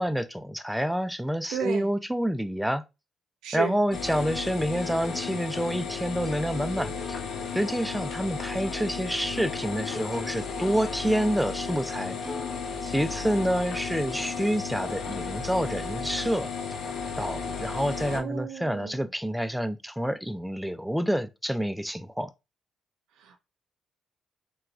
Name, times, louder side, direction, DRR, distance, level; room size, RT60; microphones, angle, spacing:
voice 1, 0.0-2.8 3.5-7.2 7.5-12.2 12.8-16.5 17.2-22.3, equal, ahead, 0.3 m, -28 dB
voice 2, 1.5-1.9 3.4-3.8 18.1-19.1 23.2-23.4, right 7 dB, 90° right, 0.5 m, -33 dB
sound 1, 3.9-18.2, left 5 dB, 70° left, 0.6 m, -34 dB
Plucked string instrument, 4.0-9.0 9.3-11.0 11.4-11.5 12.2-13.4, left 3 dB, 20° left, 1.0 m, -44 dB
3.0 x 2.2 x 2.4 m
cardioid pair, 90°, 0 cm